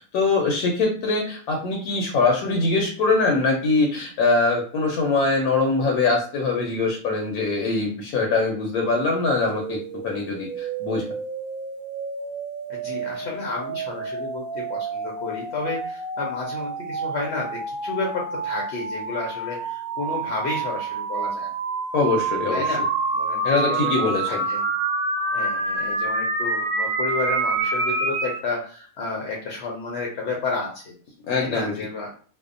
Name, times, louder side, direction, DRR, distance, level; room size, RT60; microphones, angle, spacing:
voice 1, 0.0-9.8 10.0-11.1 21.9-22.6 23.4-24.4 31.3-31.7, left 3 dB, 80° left, 1 dB, 1.0 m, -23 dB
sound 1, 9.5-28.4, right 3 dB, 70° right, 0.9 m, -28 dB
voice 2, 12.7-21.5 22.5-22.8 23.1-24.7 25.3-30.9 31.4-32.1, left 3 dB, 65° left, -1 dB, 0.7 m, -31 dB
2.6 x 2.0 x 2.5 m, 0.43 s
omnidirectional pair, 1.6 m